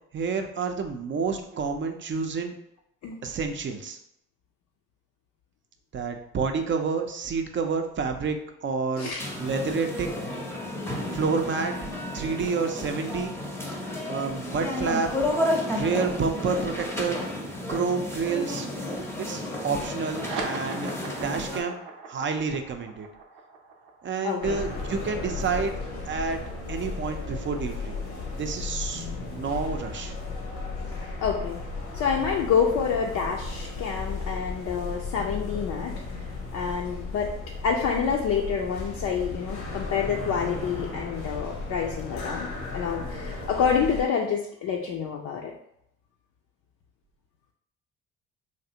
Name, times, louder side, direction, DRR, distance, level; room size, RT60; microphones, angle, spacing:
voice 1, 0.1-2.5 3.2-4.0 5.9-9.1 9.4-10.1 11.1-11.7 12.1-13.3 14.1-15.1 15.7-17.2 17.7-18.7 19.2-20.9 21.2-21.8 22.1-23.1 24.0-25.7 26.1-26.4 26.7-27.9 28.4-30.1, right 5 dB, 35° right, 6 dB, 0.5 m, -29 dB
sound 1, 9.2-21.6, left 1 dB, 5° left, 0.7 m, -32 dB
sound 2, 20.0-26.9, right 4 dB, 80° right, 0.7 m, -40 dB
voice 2, 24.2-24.6 31.2-31.6 31.9-36.3 36.5-37.3 37.6-45.5, left 6 dB, 55° left, 1 dB, 0.5 m, -28 dB
sound 3, 24.4-44.0, left 3 dB, 80° left, 0.9 m, -35 dB
3.2 x 2.4 x 2.8 m, 0.76 s
supercardioid pair, 70°, 34 cm